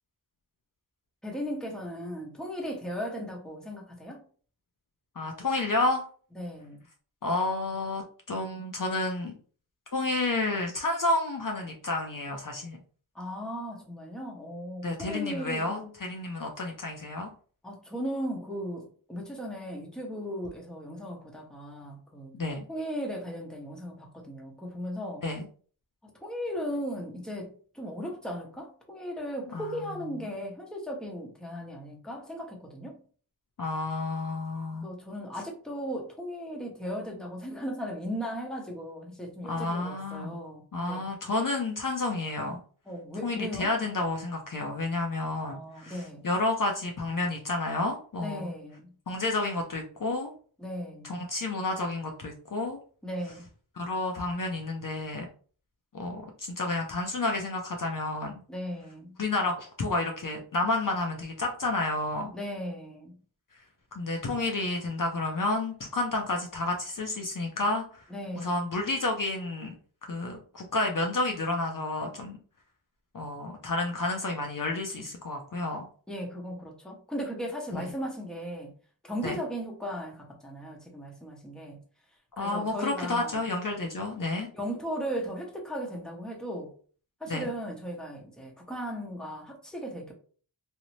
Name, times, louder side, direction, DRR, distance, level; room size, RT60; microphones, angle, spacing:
voice 1, 1.2-4.2 6.4-6.8 13.1-15.9 17.6-22.4 22.7-25.2 26.0-33.0 34.8-41.0 42.9-43.7 45.4-46.3 48.2-48.9 50.6-51.2 53.0-53.5 58.5-59.2 62.3-63.2 68.1-68.7 76.1-78.7 79.0-81.8 82.4-83.4 84.5-86.7 87.2-90.1, equal, ahead, 0.8 m, -37 dB
voice 2, 5.2-6.1 7.2-9.3 9.9-12.8 14.8-17.3 22.3-22.7 25.2-25.5 29.5-29.8 33.6-34.9 39.5-40.4 40.7-42.6 43.2-48.5 49.1-50.3 51.0-52.8 53.7-55.3 55.9-58.3 59.2-62.3 63.9-68.0 68.3-69.7 70.1-72.4 73.1-75.9 77.7-77.9 79.2-79.4 82.4-84.5 87.3-87.5, left 2 dB, 45° left, 0.5 m, -30 dB
2.6 x 2.0 x 3.0 m
cardioid pair, 40°, 45 cm